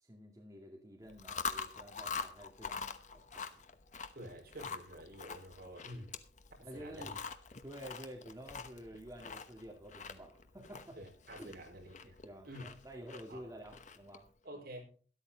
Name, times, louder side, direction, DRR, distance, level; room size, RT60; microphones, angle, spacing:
voice 1, 0.0-3.7 6.6-7.1 7.6-11.0 11.4-14.3, equal, 20° right, 2.1 m, -51 dB
Chewing mastication, 1.1-14.3, left 5 dB, 40° left, 1.0 m, -45 dB
voice 2, 4.1-6.2 6.6-7.2 11.0-12.2 12.4-12.8 13.3-13.4 14.4-14.9, equal, 60° right, 4.7 m, -49 dB
13.0 x 12.0 x 4.0 m
head